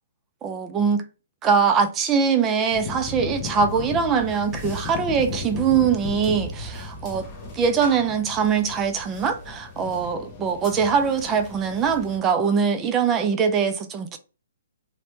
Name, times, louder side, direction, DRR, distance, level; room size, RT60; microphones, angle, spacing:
voice 1, 0.4-1.0 1.4-7.3 7.5-14.2, right 6 dB, 15° right, 0.3 m, -22 dB
sound 1, 2.7-12.2, left 3 dB, 20° left, 0.7 m, -35 dB
3.0 x 2.1 x 3.0 m
hypercardioid pair, 160°, 0 cm